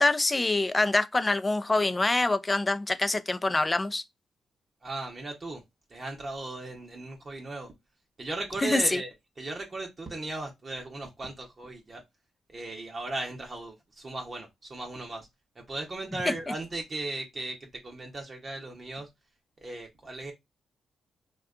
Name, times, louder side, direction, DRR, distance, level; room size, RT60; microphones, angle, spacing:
voice 1, 0.0-4.0 8.6-9.0, left 2 dB, 25° left, 0.3 m, -25 dB
voice 2, 4.8-5.6 5.9-7.7 8.2-12.0 12.5-15.3 15.6-19.1 19.6-20.3, right 2 dB, 40° right, 0.7 m, -37 dB
2.6 x 2.2 x 2.4 m
supercardioid pair, 50°, 0 cm